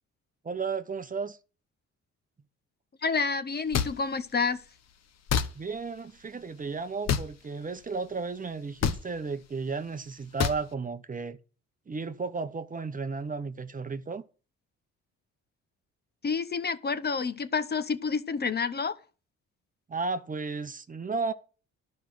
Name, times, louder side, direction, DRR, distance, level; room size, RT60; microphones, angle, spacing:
voice 1, 0.4-1.4 5.5-11.4 11.9-14.2 19.9-21.3, right 4 dB, 25° right, 0.9 m, -34 dB
voice 2, 3.0-4.6 16.2-18.9, left 5 dB, 35° left, 0.9 m, -29 dB
sound 1, 3.7-3.9 5.3-5.5 7.1-7.3 8.8-9.0 10.4-10.6, left 7 dB, 60° left, 1.1 m, -25 dB
11.0 x 5.4 x 7.7 m
cardioid pair, 90°, 30 cm